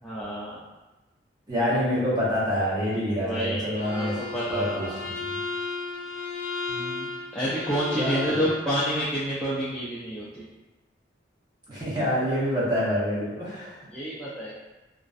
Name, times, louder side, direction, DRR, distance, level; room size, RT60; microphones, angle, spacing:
voice 1, 0.0-0.6 3.2-5.0 6.7-10.5 13.9-14.5, equal, 5° left, -9 dB, 0.3 m, -29 dB
voice 2, 1.5-4.1 4.5-5.4 7.9-8.2 11.7-13.8, equal, 20° right, -9 dB, 0.7 m, -26 dB
Bowed string instrument, 3.8-8.7, left 4 dB, 90° left, 0.3 m, -34 dB
2.4 x 2.1 x 2.4 m, 1.1 s
head